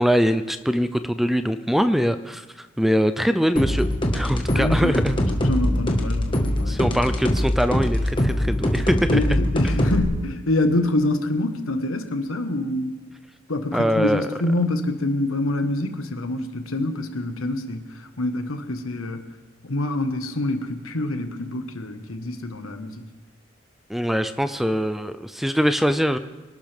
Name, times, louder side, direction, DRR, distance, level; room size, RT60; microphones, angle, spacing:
voice 1, 0.0-3.9 4.1-5.2 6.7-9.2 9.6-9.8 13.7-14.3 23.9-26.2, equal, ahead, 10 dB, 0.4 m, -22 dB
sound 1, 3.6-10.0, left 1 dB, 25° left, 1.5 m, -22 dB
voice 2, 4.5-4.9 5.4-6.8 9.1-12.9 13.5-19.2 19.6-23.0, left 1 dB, 85° left, 7 dB, 1.5 m, -26 dB
24.0 x 12.0 x 3.5 m, 1.3 s
head